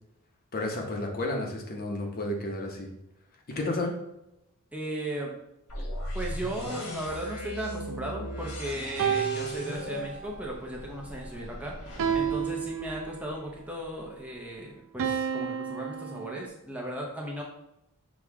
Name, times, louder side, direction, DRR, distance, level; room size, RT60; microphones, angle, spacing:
voice 1, 0.5-2.9 3.5-4.0, left 2 dB, 45° left, 1 dB, 0.8 m, -31 dB
voice 2, 4.7-5.3 6.1-17.4, right 1 dB, 5° right, -2 dB, 0.6 m, -36 dB
sound 1, 5.7-13.6, equal, 80° left, 1.2 m, -39 dB
sound 2, 6.7-8.4 9.0-10.4 12.0-13.4 15.0-16.5, right 7 dB, 65° right, 0.4 m, -32 dB
6.2 x 2.3 x 3.5 m, 0.85 s
head